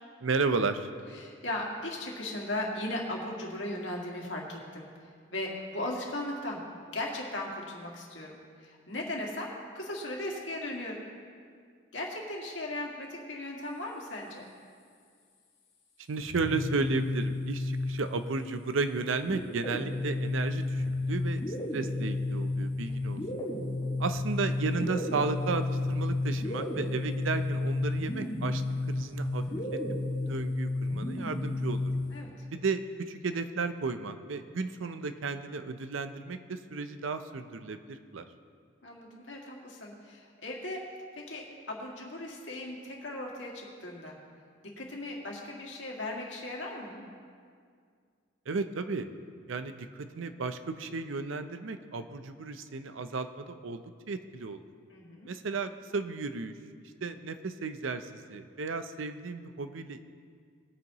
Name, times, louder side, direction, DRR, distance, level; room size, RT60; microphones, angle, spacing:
voice 1, 0.2-0.9 16.1-21.4 21.7-23.2 24.0-28.6 28.9-29.4 29.7-29.8 30.3-31.9 32.5-38.2 48.5-49.1 49.5-54.6 55.2-56.5 56.8-60.0, right 4 dB, 80° right, 10 dB, 0.6 m, -34 dB
voice 2, 1.1-6.6 6.9-11.0 11.9-14.4 32.1-32.3 38.8-40.8 41.1-44.2 44.8-47.0 54.9-55.3, left 1 dB, 65° left, -2 dB, 2.1 m, -37 dB
sound 1, 16.2-18.3 19.3-32.2, left 2 dB, 25° left, 2.0 m, -32 dB
19.5 x 9.3 x 3.0 m, 2.1 s
head